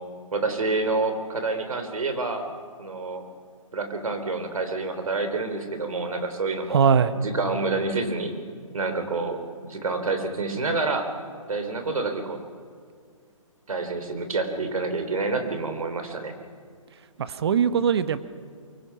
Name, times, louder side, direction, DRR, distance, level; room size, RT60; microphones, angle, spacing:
voice 1, 0.3-2.5 2.8-3.2 3.7-6.8 7.1-8.3 8.7-11.1 11.5-12.4 13.7-16.3, right 3 dB, 85° right, 7 dB, 3.4 m, -28 dB
voice 2, 6.7-7.1 17.2-18.2, right 7 dB, 50° right, 13 dB, 1.1 m, -21 dB
23.5 x 23.0 x 5.7 m, 2.2 s
hypercardioid pair, 160°, 17 cm